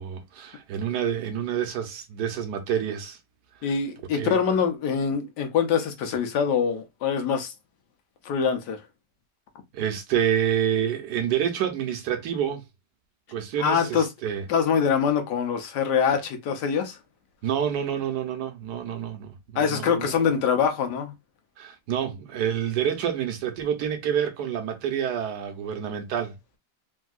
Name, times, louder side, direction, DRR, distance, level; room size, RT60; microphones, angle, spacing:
voice 1, 0.0-3.2 4.1-4.4 9.7-12.6 13.3-14.4 17.4-20.2 21.6-26.4, right 9 dB, 75° right, 1.3 m, -28 dB
voice 2, 3.6-7.5 8.2-8.8 13.6-14.1 14.5-17.0 19.6-21.1, left 7 dB, 80° left, 1.3 m, -24 dB
3.5 x 2.6 x 2.3 m
omnidirectional pair, 1.8 m